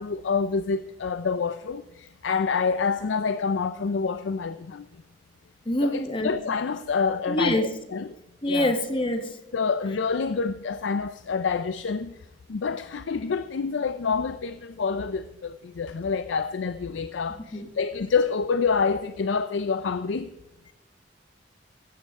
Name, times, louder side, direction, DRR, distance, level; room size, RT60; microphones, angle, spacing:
voice 1, 0.0-4.9 5.8-8.1 8.4-8.7 9.5-12.2 12.5-20.3, left 5 dB, 85° left, 0.5 m, -27 dB
voice 2, 5.6-6.3 7.3-7.7 8.4-9.4 17.5-17.7, left 1 dB, 30° left, 1.3 m, -25 dB
15.5 x 15.0 x 3.6 m
head